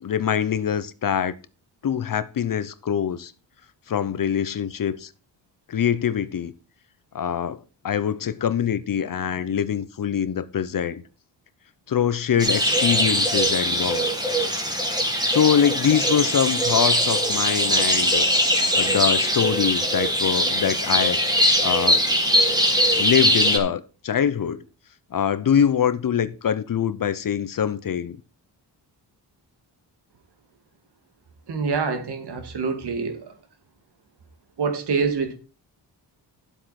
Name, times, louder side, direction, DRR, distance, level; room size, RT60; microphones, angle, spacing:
voice 1, 0.0-1.3 1.8-3.3 3.9-5.1 5.7-6.5 7.1-7.6 7.8-11.0 11.9-14.1 15.3-18.2 18.7-21.2 21.6-22.0 23.0-24.6 25.1-28.2, left 8 dB, 50° left, 0.8 m, -24 dB
sound 1, 12.4-23.6, equal, 10° right, 2.5 m, -21 dB
voice 2, 31.5-33.3 34.6-35.3, right 5 dB, 65° right, 2.3 m, -26 dB
11.0 x 8.0 x 4.3 m
cardioid pair, 100°, 43 cm